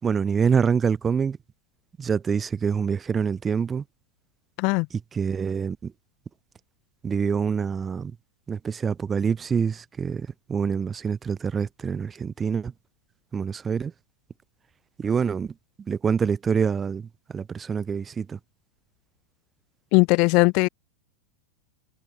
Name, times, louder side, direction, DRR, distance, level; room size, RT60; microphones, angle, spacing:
voice 1, 0.0-1.4 2.0-3.8 4.9-5.9 7.0-8.2 8.5-12.7 13.3-13.9 15.0-18.4, right 6 dB, 20° right, 4.5 m, -26 dB
voice 2, 19.9-20.7, left 30 dB, 45° left, 1.6 m, -19 dB
figure-of-eight pair, 90°, 0 cm